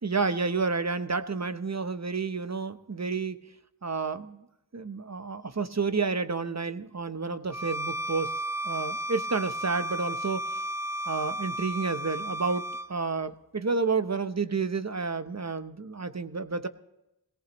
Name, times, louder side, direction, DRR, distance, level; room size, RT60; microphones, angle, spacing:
voice 1, 0.0-3.4 3.8-4.4 4.7-8.4 8.6-10.5 11.1-16.7, right 4 dB, 40° right, 11 dB, 0.8 m, -30 dB
Bowed string instrument, 7.5-12.9, equal, 5° right, 0.4 m, -33 dB
18.0 x 18.0 x 3.0 m, 0.90 s
wide cardioid pair, 50°, 43 cm